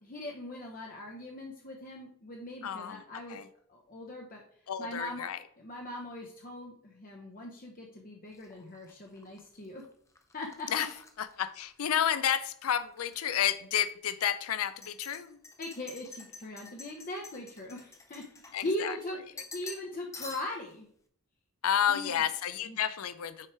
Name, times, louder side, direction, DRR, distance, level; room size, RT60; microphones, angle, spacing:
voice 1, 0.0-3.4 3.7-4.4 4.8-5.3 5.6-9.8 10.3-10.7 15.6-18.2 18.6-20.9 21.9-22.1 22.6-22.8, left 1 dB, 40° left, 0 dB, 0.8 m, -40 dB
voice 2, 2.6-3.0 3.3-3.5 4.7-5.4 10.7-10.9 11.2-15.4 18.5-18.9 21.6-23.5, left 9 dB, 75° left, 13 dB, 0.5 m, -31 dB
sound 1, 8.3-12.3 12.6-13.2 13.7-13.8 14.6-19.0 19.4-19.9 20.1-20.7, left 3 dB, 15° left, 0.6 m, -49 dB
5.8 x 4.6 x 4.7 m, 0.62 s
head